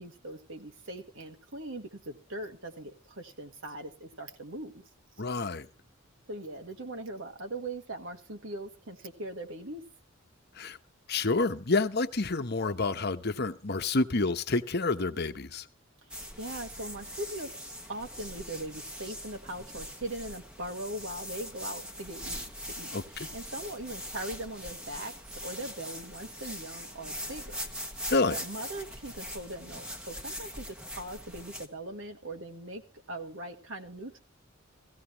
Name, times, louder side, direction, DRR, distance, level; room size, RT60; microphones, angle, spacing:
voice 1, 0.0-4.8 6.3-9.8 16.0-17.6 17.9-27.6 28.3-32.8 33.1-34.2, right 1 dB, 65° right, 1.7 m, -40 dB
voice 2, 5.2-5.7 10.6-10.8 11.1-15.6 22.9-23.0 28.1-28.4, left 3 dB, 50° left, 1.0 m, -28 dB
sound 1, 16.1-31.7, equal, 5° right, 1.3 m, -42 dB
16.5 x 16.5 x 2.9 m
head